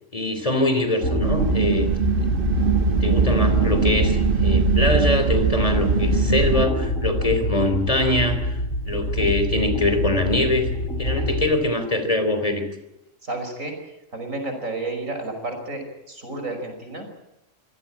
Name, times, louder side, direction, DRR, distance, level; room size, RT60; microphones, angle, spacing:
voice 1, 0.1-1.9 2.2-2.3 3.0-8.6 8.9-10.7 11.0-12.7, left 1 dB, 25° left, 8 dB, 3.8 m, -23 dB
sound 1, 1.0-11.5, left 1 dB, 85° left, 6.1 m, -27 dB
sound 2, 1.2-6.7, right 5 dB, 45° right, 1.5 m, -21 dB
voice 2, 13.2-17.1, right 2 dB, 90° right, 5 dB, 5.8 m, -31 dB
26.0 x 16.5 x 8.7 m, 0.91 s
omnidirectional pair, 1.3 m